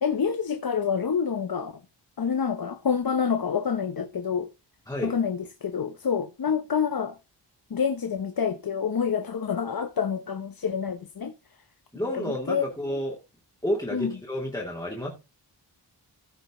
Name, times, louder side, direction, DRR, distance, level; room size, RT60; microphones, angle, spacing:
voice 1, 0.0-1.7 2.2-4.5 5.0-7.2 7.7-11.3 12.1-12.6 13.9-14.1, left 6 dB, 55° left, 0.9 m, -27 dB
voice 2, 11.9-13.2 13.6-15.1, left 1 dB, 10° left, 2.5 m, -30 dB
15.0 x 5.1 x 3.8 m
wide cardioid pair, 120°, 43 cm